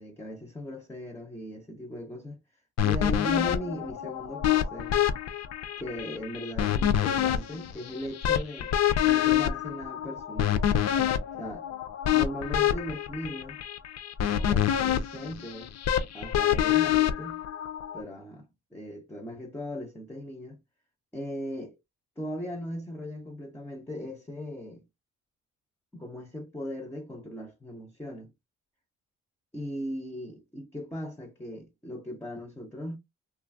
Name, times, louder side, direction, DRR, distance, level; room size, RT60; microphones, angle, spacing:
voice 1, 0.0-2.4 2.8-5.0 5.8-8.8 9.0-10.6 11.4-11.7 12.1-13.6 14.3-15.7 16.1-17.4 17.9-20.6 21.1-21.8 22.2-24.8 25.9-28.3 29.5-33.0, equal, 10° left, 0.6 m, -38 dB
sound 1, 2.8-18.0, left 10 dB, 60° left, 0.5 m, -27 dB
2.6 x 2.3 x 2.5 m
cardioid pair, 90°, 30 cm